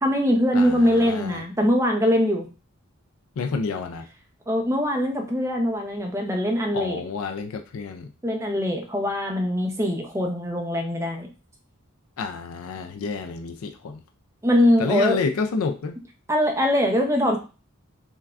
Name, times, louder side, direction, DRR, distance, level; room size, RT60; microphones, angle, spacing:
voice 1, 0.0-2.4 4.5-7.0 8.2-11.3 14.4-15.2 16.3-17.4, equal, 15° right, 0.6 m, -22 dB
voice 2, 0.5-1.4 3.4-4.0 6.7-8.1 12.2-14.0 14.8-16.0, left 4 dB, 80° left, 0.4 m, -29 dB
5.6 x 2.3 x 2.4 m
head